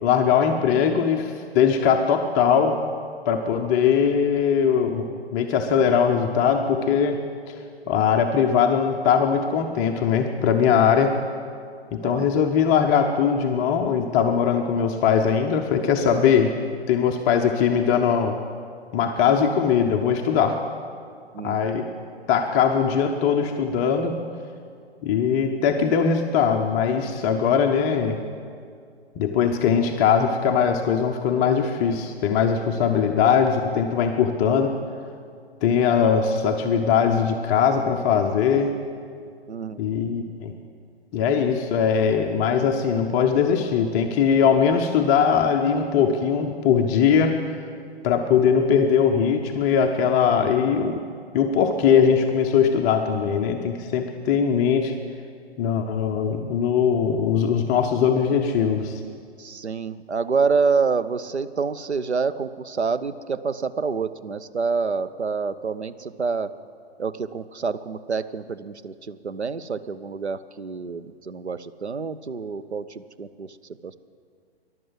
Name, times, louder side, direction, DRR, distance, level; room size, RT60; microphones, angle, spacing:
voice 1, 0.0-2.8 3.3-7.2 7.9-11.2 11.9-16.5 16.9-18.4 18.9-20.6 21.4-21.9 22.3-24.2 25.0-28.2 29.2-34.7 35.6-38.8 39.8-40.5 41.1-47.4 48.0-51.0 51.3-54.9 55.6-59.0, left 7 dB, 15° left, 3 dB, 0.5 m, -21 dB
voice 2, 12.0-12.4 21.3-21.6 39.5-39.8 59.4-66.5 67.0-73.5 73.8-74.0, right 5 dB, 85° right, 13 dB, 0.7 m, -27 dB
14.0 x 11.0 x 7.7 m, 2.2 s
figure-of-eight pair, 120°, 32 cm